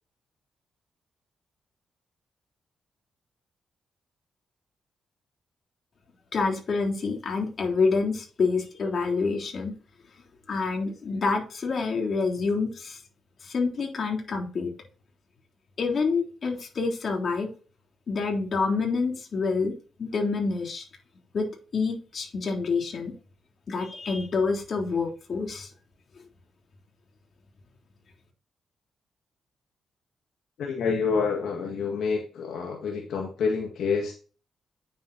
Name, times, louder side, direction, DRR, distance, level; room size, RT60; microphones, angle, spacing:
voice 1, 6.3-9.7 10.5-13.0 13.4-14.7 15.8-17.5 18.1-20.8 21.3-23.1 23.7-25.7, left 4 dB, 55° left, 1 dB, 3.5 m, -27 dB
voice 2, 30.6-34.1, left 5 dB, 80° left, 0 dB, 1.9 m, -28 dB
9.5 x 7.6 x 2.8 m, 0.36 s
cardioid pair, 70°, 0 cm